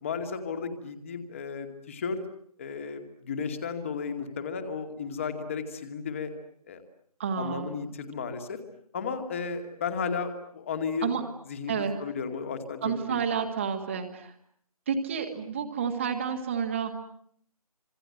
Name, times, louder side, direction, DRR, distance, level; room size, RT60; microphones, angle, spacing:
voice 1, 0.0-2.2 2.6-6.3 6.7-6.8 7.4-8.6 8.9-11.1 11.5-13.4, left 5 dB, 20° left, 8 dB, 2.4 m, -34 dB
voice 2, 7.2-7.7 11.0-11.2 11.7-12.0 12.8-14.3 14.9-16.9, right 6 dB, 20° right, 4 dB, 1.8 m, -30 dB
27.5 x 26.5 x 7.9 m, 0.66 s
figure-of-eight pair, 155°, 20 cm